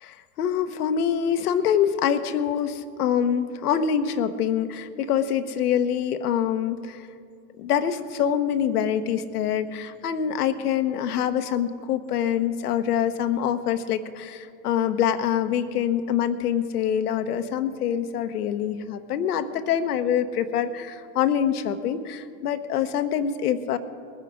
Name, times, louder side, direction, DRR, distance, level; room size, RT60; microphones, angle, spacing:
voice 1, 0.0-7.0 7.6-23.8, left 9 dB, 85° left, 9 dB, 1.0 m, -25 dB
20.0 x 9.9 x 4.9 m, 2.3 s
hypercardioid pair, 110°, 45 cm